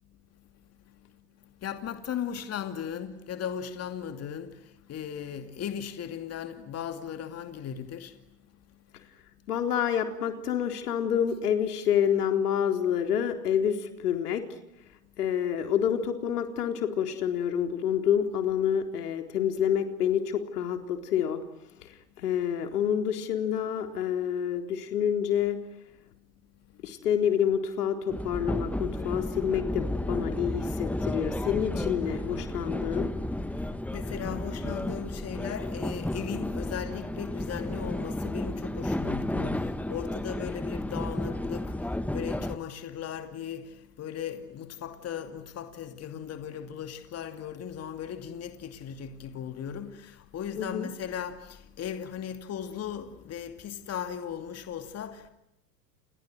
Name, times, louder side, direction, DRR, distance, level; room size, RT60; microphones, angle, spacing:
voice 1, 0.3-9.1 15.0-15.1 26.7-26.9 33.4-55.3, left 8 dB, 30° left, 2.6 m, -38 dB
voice 2, 9.5-14.4 15.2-21.4 22.2-25.6 26.8-33.1 50.6-50.9, left 9 dB, 75° left, 4.0 m, -28 dB
sound 1, 28.1-42.6, left 1 dB, 5° left, 1.6 m, -32 dB
30.0 x 30.0 x 6.4 m
hypercardioid pair, 90°, 47 cm